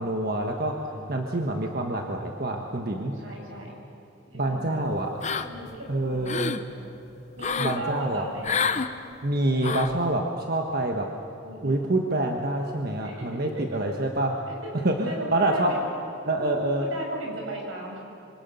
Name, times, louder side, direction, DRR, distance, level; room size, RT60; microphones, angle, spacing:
voice 1, 0.0-3.1 4.3-5.1 5.9-6.6 7.6-8.3 9.2-11.1 11.6-14.4 14.8-15.8 16.2-16.9, right 1 dB, 50° right, 2 dB, 1.4 m, -27 dB
voice 2, 2.9-3.7 4.3-4.8 5.4-6.8 7.4-8.6 11.4-12.0 13.0-13.6 14.5-15.8 16.4-18.0, right 1 dB, 85° right, 0 dB, 6.9 m, -37 dB
sound 1, 5.2-5.7 6.1-6.6 7.4-7.8 8.4-8.9 9.6-10.0, left 5 dB, 35° left, 0.8 m, -28 dB
27.0 x 24.5 x 7.1 m, 2.8 s
head